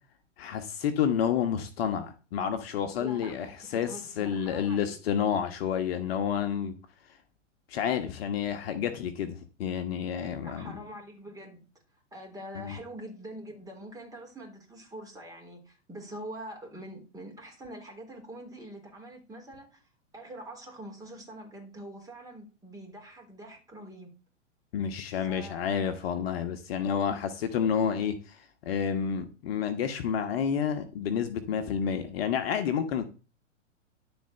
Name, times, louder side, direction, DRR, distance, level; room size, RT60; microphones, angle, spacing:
voice 1, 0.4-3.5 3.7-6.7 7.7-10.7 12.5-12.8 24.7-33.0, left 8 dB, 50° left, 1.3 m, -30 dB
voice 2, 3.0-5.0 10.4-11.6 12.1-19.9 20.1-24.1 25.0-25.9, right 1 dB, 10° right, 3.8 m, -44 dB
11.5 x 4.5 x 6.8 m
figure-of-eight pair, 115°, 38 cm